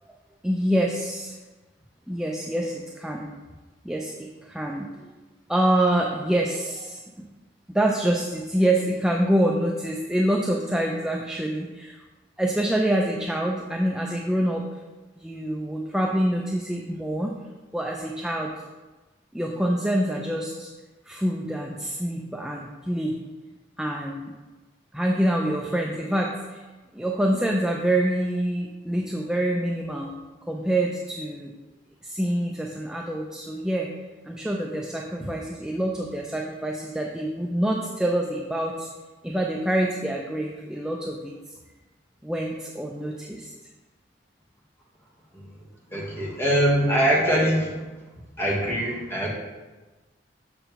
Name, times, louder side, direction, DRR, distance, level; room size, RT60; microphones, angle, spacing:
voice 1, 0.4-1.4 2.1-3.3 3.8-4.9 5.5-7.3 7.7-12.0 12.4-14.8 15.2-17.3 17.7-18.5 19.3-20.7 21.1-23.2 23.8-24.3 24.9-26.6 26.9-30.1 30.4-31.5 32.0-33.9 34.2-38.9 39.2-41.3 42.2-43.5, right 1 dB, 5° right, -1 dB, 0.4 m, -26 dB
voice 2, 45.9-47.7 48.4-49.3, equal, 15° left, -3 dB, 1.4 m, -23 dB
6.8 x 6.5 x 3.0 m, 1.2 s
head